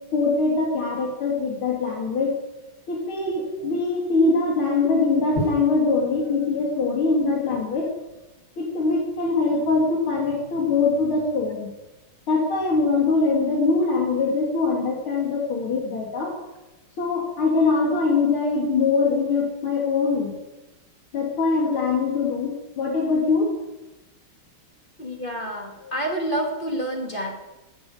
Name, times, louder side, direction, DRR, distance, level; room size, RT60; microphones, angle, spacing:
voice 1, 0.1-2.4 2.9-7.9 8.6-11.7 12.3-16.3 17.0-20.4 21.1-23.5 25.8-25.9, left 4 dB, 90° left, -3 dB, 3.3 m, -22 dB
voice 2, 25.0-27.4, right 1 dB, 25° left, 0 dB, 2.7 m, -28 dB
12.5 x 10.0 x 9.2 m, 1.0 s
omnidirectional pair, 2.2 m